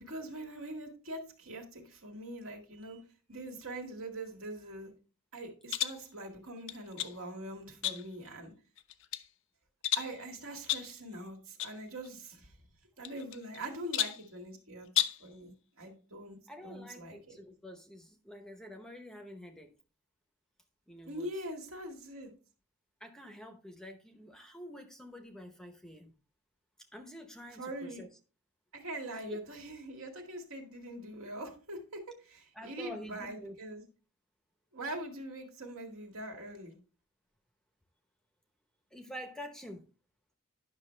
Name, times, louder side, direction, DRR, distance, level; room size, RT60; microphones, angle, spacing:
voice 1, 0.0-3.0 3.3-4.9 5.3-8.5 10.0-12.5 13.0-14.9 15.2-16.4 16.6-17.4 21.0-22.3 27.6-28.0 28.7-33.8 34.7-36.8, right 1 dB, 70° right, 2 dB, 2.0 m, -43 dB
sound 1, 5.7-6.0 6.7-7.2 7.8-8.3 8.8-9.3 9.8-10.2 10.7-11.0 11.6-11.8 12.0-12.1 13.0-13.6 13.9-14.3 14.9-15.3, left 12 dB, 60° left, 0.5 m, -33 dB
voice 2, 16.5-19.7 20.9-21.3 23.0-26.1 26.9-28.1 29.2-29.4 32.5-33.6 38.9-39.9, equal, ahead, 5 dB, 0.8 m, -47 dB
10.5 x 6.0 x 3.2 m, 0.36 s
head